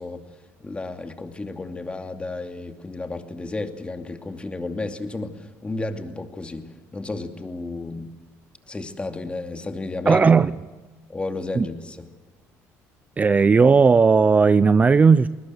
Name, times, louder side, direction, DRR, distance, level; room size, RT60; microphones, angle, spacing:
voice 1, 0.0-8.1 8.7-10.2 11.1-12.1, left 2 dB, 20° left, 7 dB, 2.5 m, -32 dB
voice 2, 10.1-10.5 11.5-11.7 13.2-15.3, right 5 dB, 25° right, 16 dB, 0.6 m, -16 dB
21.0 x 20.0 x 8.0 m, 1.3 s
cardioid pair, 100°, 6 cm